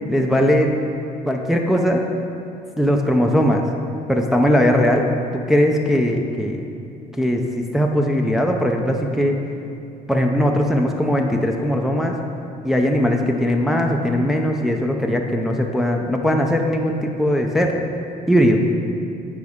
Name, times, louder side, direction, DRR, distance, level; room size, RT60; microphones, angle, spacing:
voice 1, 0.1-0.7 1.3-2.0 2.8-3.6 4.1-5.0 5.3-6.6 7.2-9.3 10.1-12.1 12.6-17.8 18.3-18.6, equal, ahead, 1 dB, 0.5 m, -19 dB
9.3 x 4.7 x 3.6 m, 2.6 s
cardioid pair, 110°, 17 cm